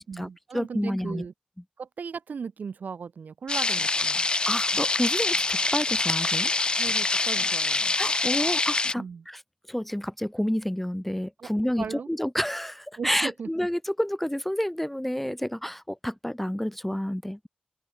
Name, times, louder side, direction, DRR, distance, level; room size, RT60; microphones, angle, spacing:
voice 1, 0.0-1.3 1.8-4.3 6.8-7.9 9.0-9.3 11.4-11.5 11.8-12.1 13.0-13.5, right 6 dB, 80° right, 3.4 m, -37 dB
voice 2, 0.5-1.2 4.5-6.5 8.0-9.4 9.7-17.5, equal, 5° left, 0.4 m, -29 dB
sound 1, 3.5-8.9, left 3 dB, 35° left, 1.0 m, -25 dB
open air
wide cardioid pair, 120°, 3 cm